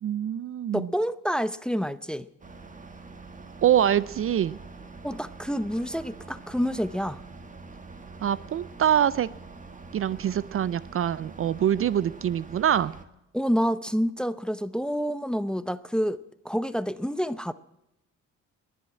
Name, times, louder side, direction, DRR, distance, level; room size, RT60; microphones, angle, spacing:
voice 1, 0.0-0.9 3.6-4.6 8.2-9.3 9.9-12.9, right 10 dB, 45° right, 0.5 m, -24 dB
voice 2, 0.7-2.3 5.0-7.2 13.3-16.2 16.4-17.5, equal, 5° left, 0.6 m, -28 dB
sound 1, 2.4-13.1, right 4 dB, 25° right, 1.7 m, -45 dB
20.5 x 7.8 x 7.4 m
cardioid pair, 90°, 30 cm